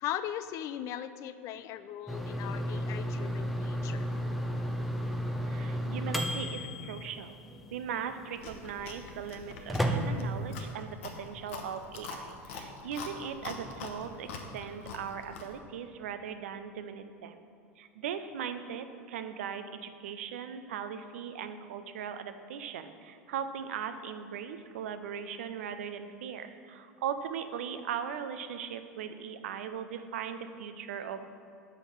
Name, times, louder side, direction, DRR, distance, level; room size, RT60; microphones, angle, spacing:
voice 1, 0.0-4.1, left 11 dB, 45° left, 13 dB, 0.3 m, -39 dB
sound 1, 2.1-10.7, equal, ahead, 0.6 m, -34 dB
voice 2, 5.4-7.4 7.7-17.4 17.8-31.3, right 8 dB, 65° right, 10 dB, 0.5 m, -39 dB
Chewing mastication, 8.4-15.6, left 4 dB, 65° left, 0.8 m, -44 dB
5.7 x 5.2 x 6.2 m, 2.4 s
figure-of-eight pair, 80°, 8 cm